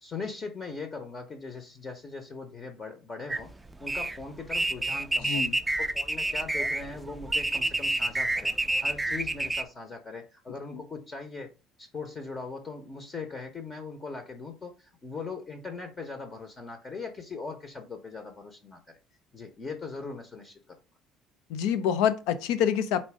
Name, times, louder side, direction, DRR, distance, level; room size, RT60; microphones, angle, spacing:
voice 1, 0.0-3.5 3.8-5.4 5.8-8.5 8.8-11.5 11.8-18.8 19.3-20.6, left 4 dB, 30° left, 0.8 m, -40 dB
sound 1, 3.3-9.6, right 2 dB, 10° right, 0.4 m, -28 dB
voice 2, 5.2-5.6 21.5-23.0, left 9 dB, 85° left, 0.5 m, -26 dB
4.2 x 2.6 x 4.8 m
cardioid pair, 125°, 0 cm